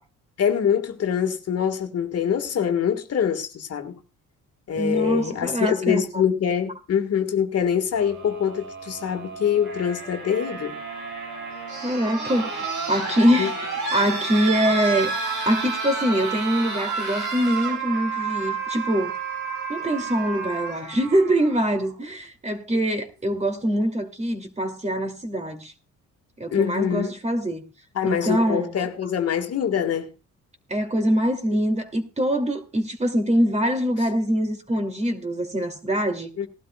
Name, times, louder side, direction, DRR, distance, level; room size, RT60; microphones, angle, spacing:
voice 1, 0.4-4.0 4.7-10.8 13.4-13.5 26.5-27.1 27.9-30.1 36.4-36.5, left 8 dB, 55° left, 1.7 m, -24 dB
voice 2, 4.7-6.0 11.8-13.5 13.9-15.1 15.5-19.1 19.7-25.7 26.4-27.6 28.0-28.9 30.7-36.3, equal, 20° right, 2.6 m, -24 dB
sound 1, 7.9-21.9 23.1-23.2, right 4 dB, 85° right, 6.2 m, -31 dB
19.5 x 12.0 x 2.3 m
cardioid pair, 90°, 30 cm